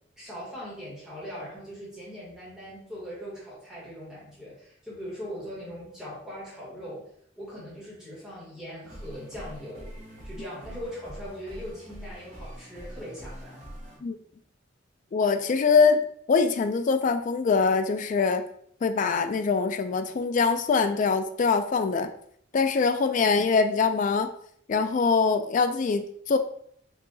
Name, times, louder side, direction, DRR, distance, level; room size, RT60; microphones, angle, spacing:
voice 1, 0.2-7.1 7.4-9.9 10.2-13.6 23.2-23.3, equal, 5° right, -8 dB, 1.6 m, -40 dB
sound 1, 8.8-14.0, equal, 40° right, 1.4 m, -43 dB
voice 2, 15.1-16.0 16.3-18.4 18.8-22.1 22.5-24.3 24.7-26.4, left 5 dB, 40° left, 9 dB, 0.3 m, -23 dB
4.7 x 2.8 x 2.7 m, 0.65 s
head